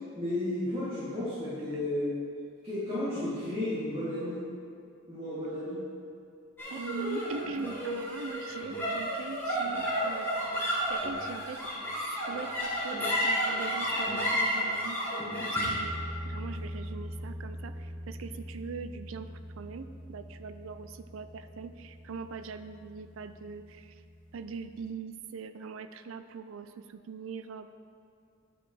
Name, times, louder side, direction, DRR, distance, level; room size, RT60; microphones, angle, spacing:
voice 1, 0.2-2.1 2.6-4.4 5.1-5.8, left 1 dB, 25° right, -13 dB, 2.2 m, -33 dB
sound 1, 6.6-23.1, equal, 10° left, 1.6 m, -33 dB
voice 2, 6.7-10.3 10.6-11.6 11.9-15.0 15.3-24.0 24.3-27.7, right 5 dB, 70° right, 10 dB, 0.4 m, -42 dB
9.9 x 4.8 x 4.8 m, 2.4 s
head